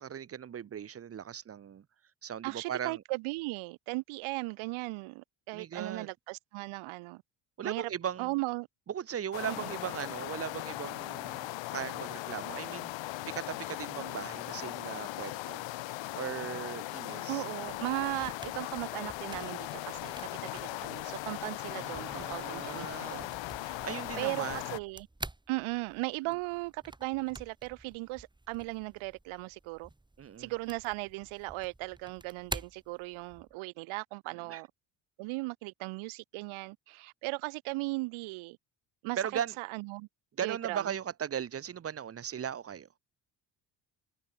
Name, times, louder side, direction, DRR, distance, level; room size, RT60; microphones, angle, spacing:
voice 1, 0.0-1.8 2.2-3.0 5.5-6.1 7.6-8.4 8.9-15.6 16.1-17.4 21.7-23.3 23.6-24.7 30.2-30.5 34.5-34.6 39.2-39.5 40.4-42.9, right 8 dB, 30° right, 0.8 m, -38 dB
voice 2, 2.4-7.2 7.6-7.9 8.2-8.7 9.5-9.7 17.3-20.1 20.4-23.3 24.1-25.1 25.5-29.9 30.4-34.7 35.2-38.6 39.0-39.2 39.6-40.1 40.4-40.9, right 24 dB, 80° right, 1.1 m, -37 dB
sound 1, 9.3-24.8, left 17 dB, 65° left, 1.2 m, -39 dB
sound 2, 17.6-33.6, right 2 dB, 10° right, 2.1 m, -49 dB
supercardioid pair, 90°, 47 cm